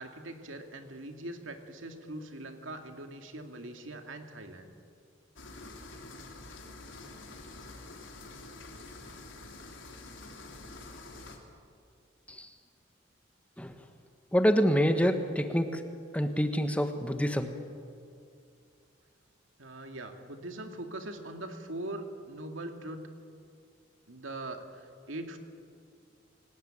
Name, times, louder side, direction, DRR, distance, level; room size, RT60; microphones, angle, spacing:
voice 1, 0.0-4.7 19.6-23.0 24.1-25.4, right 1 dB, 90° right, 5 dB, 2.5 m, -41 dB
sound 1, 5.4-11.4, left 2 dB, 75° left, 3.8 m, -47 dB
voice 2, 14.3-15.8 16.1-17.5, equal, 5° left, 7 dB, 1.3 m, -26 dB
29.0 x 18.5 x 9.0 m, 2.4 s
head